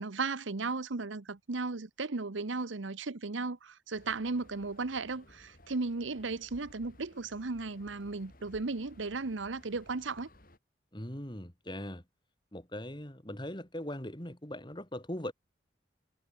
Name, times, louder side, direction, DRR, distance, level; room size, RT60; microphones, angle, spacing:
voice 1, 0.0-10.3, right 3 dB, 85° right, 1.0 m, -35 dB
sound 1, 3.9-10.6, left 1 dB, 50° left, 7.8 m, -58 dB
voice 2, 10.9-12.0 12.5-15.3, left 1 dB, 25° left, 3.3 m, -40 dB
head